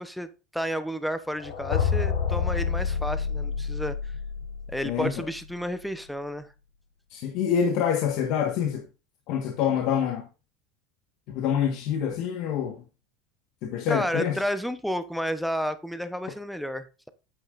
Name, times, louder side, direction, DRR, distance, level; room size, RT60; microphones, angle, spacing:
voice 1, 0.0-4.0 4.7-6.5 13.9-17.1, equal, ahead, 0.9 m, -31 dB
sound 1, 1.4-5.4, left 6 dB, 90° left, 3.0 m, -28 dB
voice 2, 4.8-5.2 7.1-8.8 9.3-10.3 11.3-12.8 13.6-14.4, left 8 dB, 60° left, 1.4 m, -26 dB
8.6 x 8.4 x 2.6 m
supercardioid pair, 100°, 0 cm